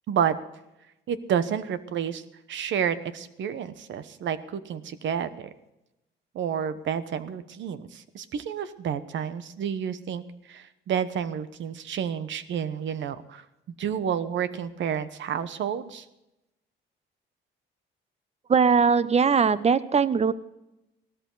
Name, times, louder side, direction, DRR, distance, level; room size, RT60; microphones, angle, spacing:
voice 1, 1.1-2.2 2.5-5.5 6.3-10.2 10.5-13.4 13.8-16.0, right 8 dB, 70° right, 13 dB, 1.0 m, -30 dB
voice 2, 18.5-20.3, right 6 dB, 35° right, 16 dB, 0.8 m, -20 dB
16.5 x 13.5 x 3.9 m, 0.90 s
cardioid pair, 90°, 20 cm